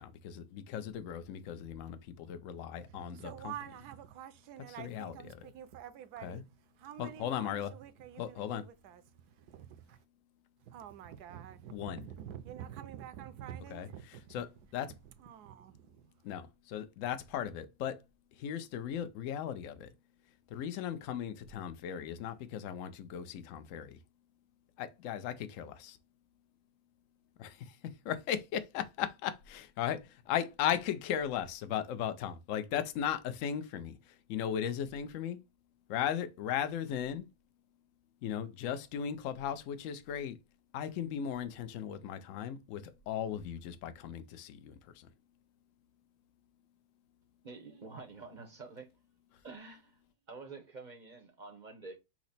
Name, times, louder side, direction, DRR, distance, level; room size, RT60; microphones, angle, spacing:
voice 1, 0.0-3.5 4.8-5.1 6.2-6.4 7.0-7.7 8.2-8.6 11.7-12.0 13.7-13.9 14.3-15.0 16.2-18.0 18.4-19.9 20.5-24.0 24.8-26.0 28.0-29.4 29.8-30.0 30.3-35.4 35.9-37.3 38.2-40.4 40.7-45.1, left 9 dB, 70° left, 0.8 m, -37 dB
voice 2, 2.8-10.0 10.6-14.4 15.0-16.1, right 10 dB, 70° right, 1.1 m, -48 dB
voice 3, 47.4-48.9 49.4-50.0 50.3-52.0, right 3 dB, 40° right, 0.6 m, -48 dB
5.8 x 2.1 x 4.0 m
omnidirectional pair, 1.9 m